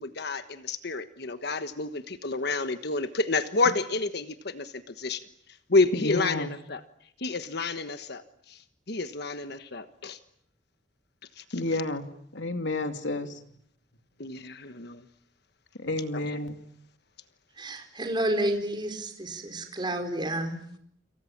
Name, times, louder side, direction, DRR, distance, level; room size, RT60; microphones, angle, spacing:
voice 1, 0.0-5.2 5.7-6.8 7.2-8.2 8.5-8.6 8.9-10.2 11.4-11.5 14.2-15.0 16.1-16.2, left 3 dB, 60° left, 10 dB, 1.4 m, -29 dB
voice 2, 5.9-6.5 11.5-12.0 12.3-13.4 15.8-16.6, left 2 dB, 85° left, 7 dB, 2.8 m, -30 dB
voice 3, 17.6-20.6, right 1 dB, 25° right, 5 dB, 4.5 m, -30 dB
29.0 x 27.5 x 7.4 m, 0.69 s
head